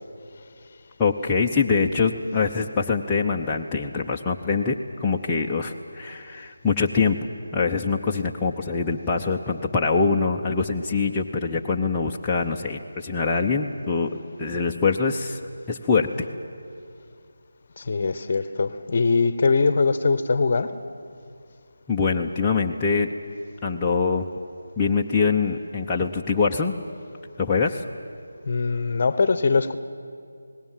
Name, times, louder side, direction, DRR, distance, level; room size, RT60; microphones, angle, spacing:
voice 1, 1.0-14.1 14.4-15.4 15.7-16.3 21.9-23.1 23.6-24.3 24.8-26.7 27.4-27.8, left 4 dB, 15° left, -3 dB, 0.8 m, -24 dB
voice 2, 17.8-20.7 28.5-29.8, left 4 dB, 45° left, 13 dB, 1.0 m, -22 dB
27.0 x 19.5 x 7.5 m, 2.3 s
figure-of-eight pair, 160°, 0 cm